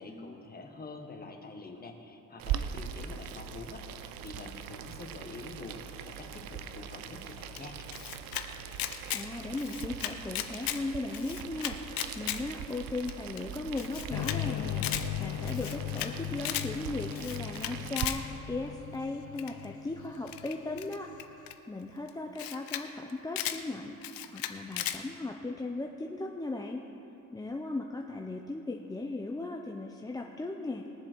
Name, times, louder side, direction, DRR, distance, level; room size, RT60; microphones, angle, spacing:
voice 1, 0.0-7.8, left 3 dB, 25° left, 3 dB, 1.4 m, -46 dB
Boiling, 2.4-18.1, right 8 dB, 85° right, 0.7 m, -41 dB
Camera, 7.6-8.4 8.7-9.2 9.5-10.8 11.1-12.4 12.7-12.8 13.1-13.2 13.4-13.5 13.8-14.4 14.7-15.0 15.4-16.1 16.4-16.7 17.1-18.2 19.4-19.7 20.3-21.5 22.1-22.2 22.4-22.8 23.1-23.6 24.0-25.0, left 12 dB, 90° left, 0.8 m, -35 dB
voice 2, 9.1-26.8 27.3-30.9, left 2 dB, 10° left, 1 dB, 0.6 m, -37 dB
sound 1, 14.1-21.2, left 13 dB, 60° left, 0.5 m, -38 dB
21.0 x 7.5 x 4.6 m, 2.9 s
cardioid pair, 125°, 34 cm